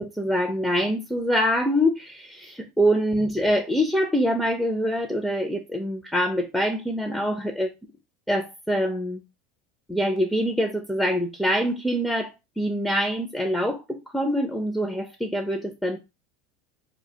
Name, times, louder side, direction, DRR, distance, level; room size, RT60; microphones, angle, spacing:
voice 1, 0.0-2.3 2.8-7.7 8.3-9.2 9.9-12.3 12.6-16.0, equal, 5° left, 0.4 m, -24 dB
2.3 x 2.1 x 2.7 m
hypercardioid pair, 90°, 0 cm